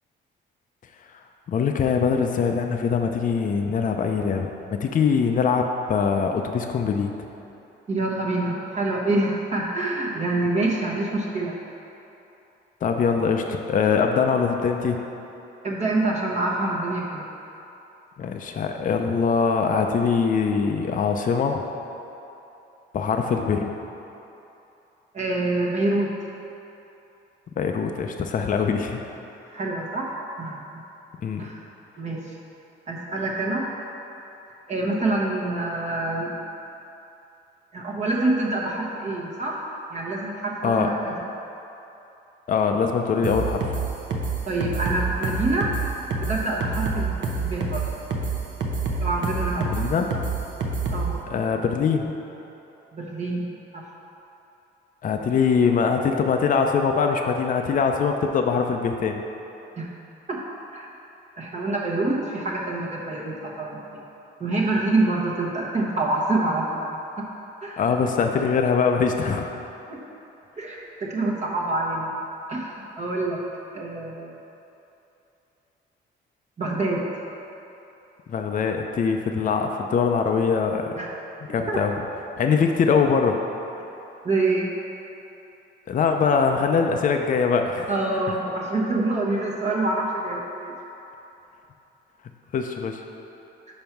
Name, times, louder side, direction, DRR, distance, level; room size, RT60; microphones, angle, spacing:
voice 1, 1.5-7.1 12.8-15.0 18.2-21.6 22.9-23.7 27.5-29.0 31.2-31.5 40.6-41.0 42.5-43.7 49.7-50.2 51.3-52.1 55.0-59.2 67.8-69.6 78.3-81.0 81.5-81.9 82.4-83.4 85.9-87.9 92.5-93.0, left 5 dB, 40° left, 4 dB, 0.5 m, -23 dB
voice 2, 7.9-11.5 15.6-17.2 25.1-26.1 29.5-30.1 30.4-30.6 31.4-31.6 32.0-32.2 32.9-33.7 34.7-36.4 37.7-39.6 39.9-41.1 44.5-45.7 46.2-47.8 49.0-49.8 50.9-51.2 52.9-53.4 53.7-53.8 59.8-59.9 60.3-60.4 60.7-60.9 61.4-64.0 64.4-66.7 67.2-67.3 67.6-67.8 69.9-70.0 70.6-72.1 72.5-73.4 73.7-74.4 76.6-77.0 81.0-81.1 81.5-81.8 84.2-84.7 87.9-90.7, right 2 dB, 35° right, -3 dB, 1.0 m, -26 dB
sound 1, 43.2-51.1, right 4 dB, 70° right, 0.8 m, -27 dB
5.3 x 4.4 x 5.9 m, 2.9 s
cardioid pair, 90°, 20 cm